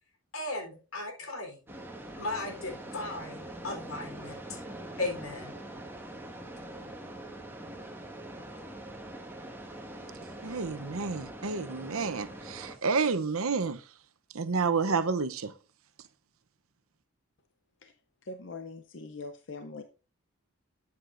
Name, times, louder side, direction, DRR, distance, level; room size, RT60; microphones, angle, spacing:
voice 1, 0.3-1.6 2.1-4.6 5.0-5.5, left 2 dB, 85° left, 3.8 m, -36 dB
sound 1, 1.7-12.7, right 1 dB, 10° right, 1.6 m, -43 dB
voice 2, 10.4-13.8 14.3-15.5, right 4 dB, 85° right, 0.8 m, -30 dB
voice 3, 18.2-19.8, left 3 dB, 60° left, 0.7 m, -42 dB
12.5 x 8.4 x 2.6 m
head